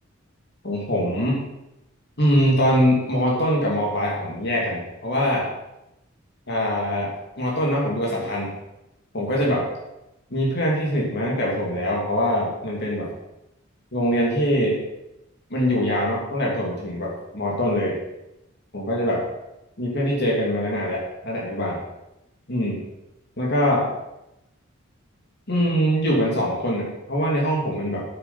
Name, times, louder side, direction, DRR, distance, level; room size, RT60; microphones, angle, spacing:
voice 1, 0.6-1.4 2.2-5.5 6.5-8.5 9.1-9.6 10.3-13.1 13.9-14.8 15.5-18.0 18.7-19.2 19.8-21.8 22.5-22.8 23.4-23.9 25.5-28.0, equal, 55° left, -3 dB, 2.9 m, -23 dB
9.1 x 9.1 x 5.8 m, 0.89 s
head